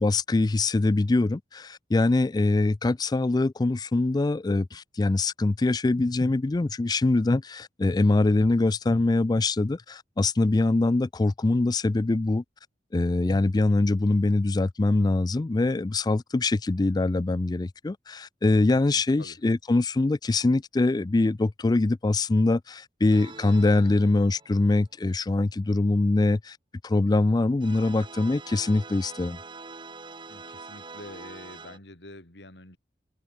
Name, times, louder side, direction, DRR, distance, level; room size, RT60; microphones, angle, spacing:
voice 1, 0.0-12.4 12.9-26.6 26.8-29.4, left 2 dB, 25° left, 0.4 m, -23 dB
voice 2, 18.9-19.4 30.3-32.8, left 1 dB, 70° left, 4.3 m, -46 dB
sound 1, 23.1-25.0 27.6-31.8, right 4 dB, 25° right, 1.6 m, -44 dB
head